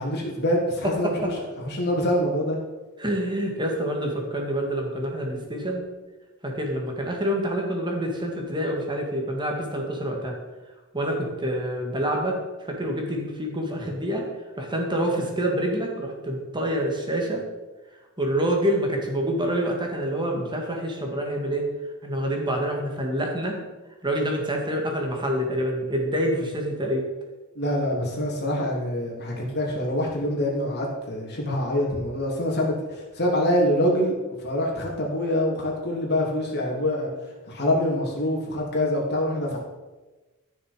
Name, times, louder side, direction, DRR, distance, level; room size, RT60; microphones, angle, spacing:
voice 1, 0.0-1.3 1.6-2.6 27.5-37.1 37.5-39.6, left 1 dB, 50° left, -2 dB, 3.1 m, -25 dB
voice 2, 0.8-1.3 3.0-5.9 6.4-10.3 10.9-14.3 14.6-17.4 18.2-21.7 22.0-23.6 24.0-27.1, equal, 20° right, 1 dB, 2.2 m, -27 dB
14.0 x 6.6 x 5.3 m, 1.2 s
head